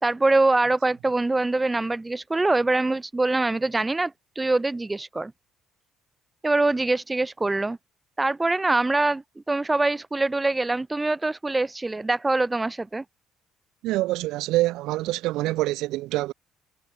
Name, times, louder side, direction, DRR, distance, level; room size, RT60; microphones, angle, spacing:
voice 1, 0.0-5.3 6.4-7.8 8.2-13.0, right 2 dB, 20° right, 2.9 m, -24 dB
voice 2, 13.8-16.3, right 17 dB, 75° right, 3.7 m, -25 dB
hypercardioid pair, 60°, 0 cm